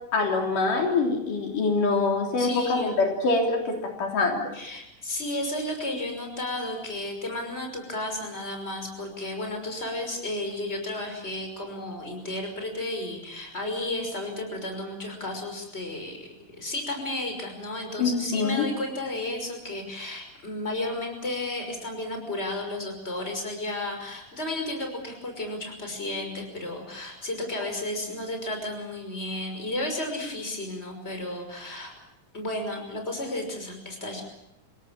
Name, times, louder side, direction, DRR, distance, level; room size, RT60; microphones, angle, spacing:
voice 1, 0.1-4.5 18.0-18.7, left 3 dB, 70° left, 2 dB, 5.0 m, -25 dB
voice 2, 2.4-2.9 4.5-31.9 32.3-34.2, left 1 dB, 15° left, 4 dB, 5.8 m, -33 dB
28.5 x 17.5 x 8.9 m, 0.87 s
omnidirectional pair, 3.9 m